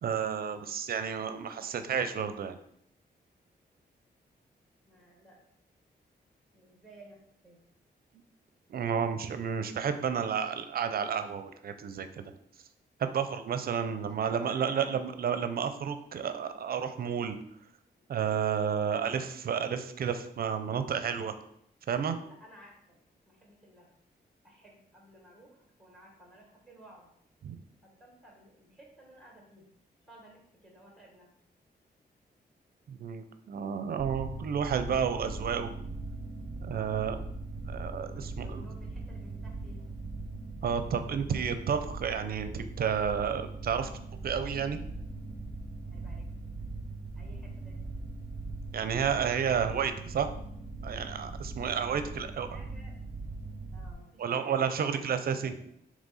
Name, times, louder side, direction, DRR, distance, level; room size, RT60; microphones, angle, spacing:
voice 1, 0.0-2.6 8.7-12.3 13.0-17.4 18.1-21.4 21.9-22.2 27.4-27.6 32.9-35.7 36.6-37.2 37.7-38.7 40.6-43.9 44.2-44.8 48.7-50.3 50.8-52.5 54.2-55.5, right 7 dB, 60° right, 9 dB, 0.5 m, -31 dB
voice 2, 4.9-5.4 6.5-7.6 13.8-15.2 17.9-18.1 22.2-23.0 23.3-23.9 24.4-27.1 27.8-29.7 30.1-31.3 36.7-37.1 38.1-39.9 45.9-46.3 47.2-48.1 51.7-52.9 53.7-55.7, right 1 dB, ahead, -1 dB, 1.6 m, -55 dB
sound 1, 34.0-53.9, right 3 dB, 25° right, 0.8 m, -40 dB
7.3 x 3.1 x 4.1 m, 0.72 s
wide cardioid pair, 175°, 17 cm